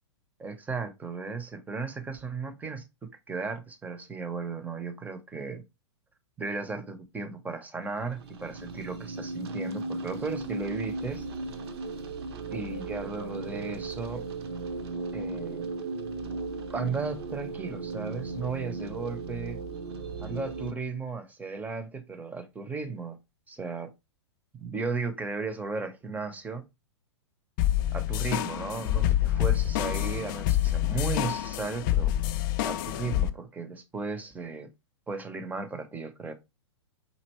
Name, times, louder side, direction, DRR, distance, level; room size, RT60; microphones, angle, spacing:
voice 1, 0.4-5.6 6.4-11.3 12.5-14.3 15.1-15.7 16.7-19.6 20.2-23.2 23.5-23.9 24.6-26.6 27.9-32.1 32.6-34.7 35.1-36.3, right 4 dB, 10° right, 0.7 m, -35 dB
sound 1, 7.9-20.7, right 3 dB, 60° right, 0.8 m, -36 dB
sound 2, 27.6-33.3, left 13 dB, 45° left, 0.4 m, -27 dB
5.3 x 2.8 x 2.9 m
hypercardioid pair, 110°, 15 cm